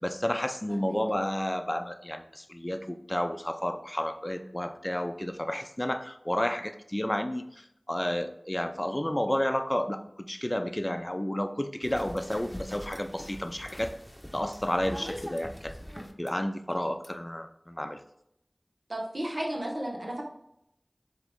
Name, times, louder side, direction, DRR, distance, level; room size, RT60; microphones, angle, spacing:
voice 1, 0.0-14.0 14.3-15.8 16.2-18.0, left 1 dB, 25° left, 7 dB, 0.5 m, -31 dB
sound 1, 11.8-16.3 17.0-17.1, equal, 5° left, 0.9 m, -43 dB
voice 2, 18.9-20.2, right 1 dB, 90° right, -2 dB, 1.5 m, -34 dB
7.2 x 3.6 x 3.6 m, 0.78 s
wide cardioid pair, 40°, 0 cm